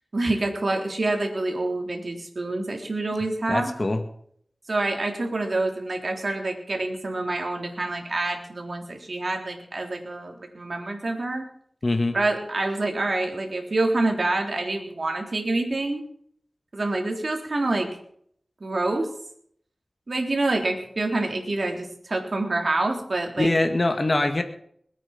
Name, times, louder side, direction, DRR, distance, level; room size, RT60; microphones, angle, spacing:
voice 1, 0.1-3.7 4.7-11.5 12.1-16.0 16.7-17.9 18.6-19.1 20.1-23.5, right 2 dB, 60° right, 2 dB, 3.6 m, -27 dB
voice 2, 3.5-4.0 11.8-12.2 23.4-24.4, left 2 dB, 45° left, 6 dB, 1.9 m, -23 dB
21.0 x 9.2 x 6.0 m, 0.64 s
wide cardioid pair, 60°, 0 cm